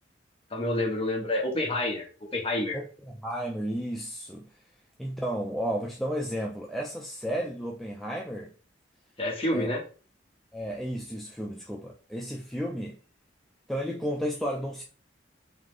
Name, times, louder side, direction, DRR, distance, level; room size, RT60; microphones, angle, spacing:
voice 1, 0.5-2.1 2.3-2.8 9.2-9.8, left 1 dB, 30° left, 1.2 m, -28 dB
voice 2, 2.7-4.5 5.0-8.5 9.5-9.7 10.5-13.0 13.7-14.8, equal, ahead, 0.4 m, -33 dB
3.7 x 3.1 x 3.2 m
head